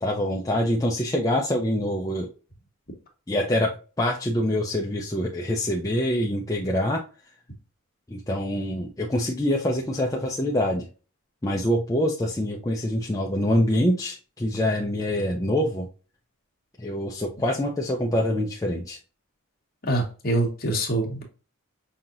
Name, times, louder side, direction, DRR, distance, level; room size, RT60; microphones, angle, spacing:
voice 1, 0.0-2.3 3.3-3.7 4.0-7.0 8.1-10.9 11.4-15.9 16.8-19.0, left 1 dB, 15° left, -1 dB, 0.5 m, -25 dB
voice 2, 19.9-21.2, right 1 dB, 40° left, 1 dB, 1.3 m, -25 dB
5.6 x 2.9 x 2.5 m, 0.35 s
head